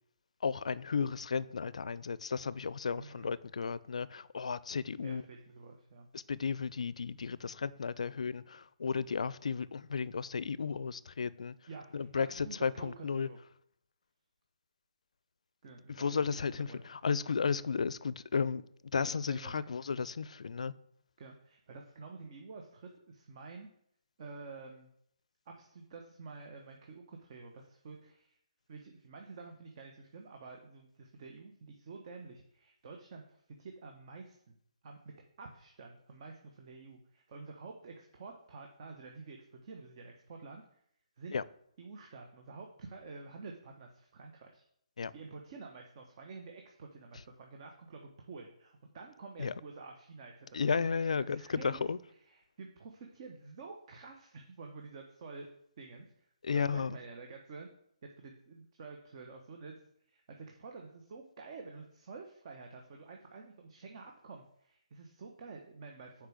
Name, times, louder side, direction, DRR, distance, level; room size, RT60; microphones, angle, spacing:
voice 1, 0.4-5.2 6.1-11.6 11.9-13.3 15.9-18.7 18.9-20.7 41.3-41.4 45.0-45.1 49.4-49.5 50.5-52.0 56.4-57.0, left 5 dB, 70° left, 0.4 m, -34 dB
voice 2, 2.9-3.3 5.0-6.1 11.7-13.4 15.6-16.2 16.4-16.8 19.0-19.6 21.2-23.7 24.2-24.9 25.5-28.4 28.7-34.5 34.8-40.6 41.2-41.4 41.8-44.6 45.1-50.5 51.2-51.8 52.3-55.5 55.8-56.3 56.5-57.7 58.0-59.8 60.1-66.3, right 4 dB, 45° right, 1.2 m, -49 dB
6.6 x 4.8 x 6.4 m
figure-of-eight pair, 140°, 4 cm